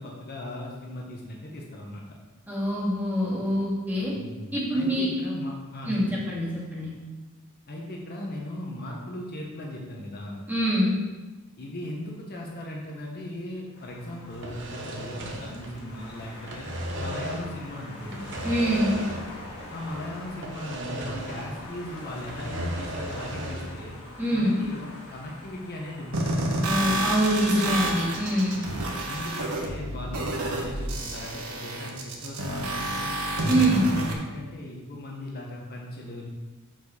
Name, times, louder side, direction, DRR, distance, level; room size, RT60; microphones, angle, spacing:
voice 1, 0.0-2.2 4.1-6.2 7.7-10.4 11.6-16.7 17.0-18.3 19.7-24.0 24.3-26.3 28.6-33.1 33.4-36.3, left 1 dB, 45° left, -2 dB, 1.2 m, -38 dB
voice 2, 2.5-4.1 4.5-5.1 5.8-6.9 10.5-10.9 18.4-18.9 24.2-24.5 26.6-28.6 33.5-33.9, equal, 10° right, -7 dB, 2.3 m, -25 dB
sound 1, 13.7-29.0, left 1 dB, 75° left, 1.8 m, -44 dB
sound 2, 14.3-16.1 16.3-17.6 18.1-19.5 19.7-19.8 20.4-21.7 22.0-23.8, right 1 dB, 55° right, 1.1 m, -35 dB
sound 3, 26.1-34.1, right 1 dB, 80° right, 1.3 m, -29 dB
6.1 x 5.2 x 6.5 m, 1.2 s
head